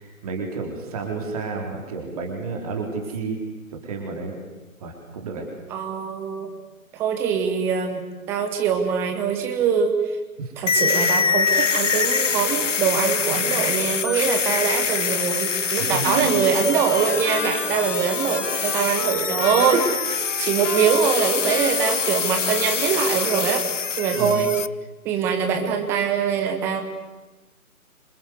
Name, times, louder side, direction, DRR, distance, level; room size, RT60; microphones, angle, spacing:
voice 1, 0.0-3.4 3.7-4.4 4.8-5.5 10.4-10.5 12.0-12.1 15.9-16.4 24.1-24.5, right 4 dB, 25° right, 2 dB, 4.2 m, -31 dB
voice 2, 5.7-6.5 6.9-8.0 8.3-9.9 10.6-23.6 24.0-24.5 25.0-26.8, right 7 dB, 5° right, 5 dB, 1.1 m, -23 dB
sound 1, 10.7-24.7, left 6 dB, 55° left, 0.9 m, -25 dB
Trumpet, 16.4-23.0, left 3 dB, 15° left, 3.4 m, -33 dB
27.0 x 26.5 x 8.0 m, 1.2 s
figure-of-eight pair, 145°, 43 cm